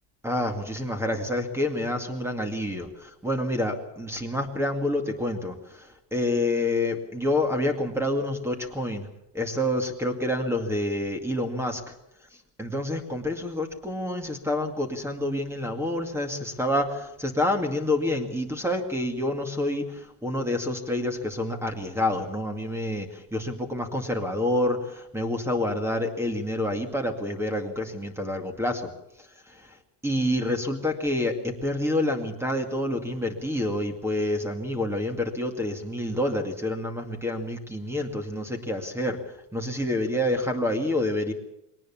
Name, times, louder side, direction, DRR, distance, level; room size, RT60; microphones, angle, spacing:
voice 1, 0.2-9.1 9.3-11.8 12.6-28.9 29.5-29.8 30.0-41.3, left 1 dB, 5° right, 5 dB, 2.2 m, -28 dB
22.0 x 18.5 x 7.3 m, 0.86 s
supercardioid pair, 135°, 45 cm